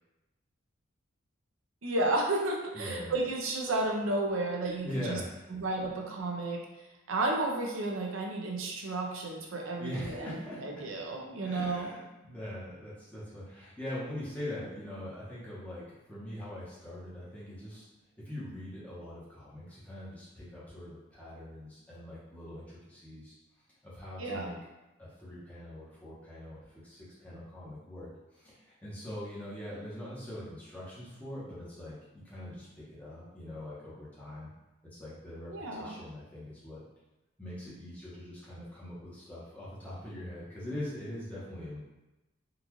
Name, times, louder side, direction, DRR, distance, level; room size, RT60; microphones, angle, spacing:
voice 1, 1.8-5.2 5.5-6.6 7.1-10.3 10.6-11.9 24.2-24.5 35.5-35.9, right 2 dB, 85° right, 0 dB, 0.6 m, -32 dB
voice 2, 2.7-3.1 4.8-5.5 5.9-6.1 9.8-10.7 11.4-23.3 23.8-24.6 25.0-34.5 34.9-36.8 37.4-41.8, left 1 dB, 5° left, -9 dB, 0.9 m, -42 dB
3.8 x 2.4 x 3.0 m, 1.0 s
head